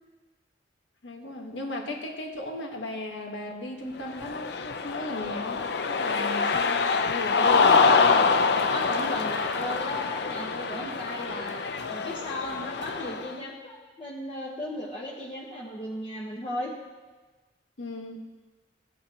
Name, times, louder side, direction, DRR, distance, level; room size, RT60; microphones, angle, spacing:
voice 1, 1.0-7.8 17.8-18.2, left 1 dB, 85° left, 2 dB, 1.4 m, -36 dB
Cheering, 4.1-13.3, left 4 dB, 60° left, 0.5 m, -25 dB
voice 2, 8.7-11.6 11.9-16.7, left 1 dB, 30° left, -6 dB, 1.2 m, -36 dB
15.5 x 8.5 x 2.9 m, 1.2 s
head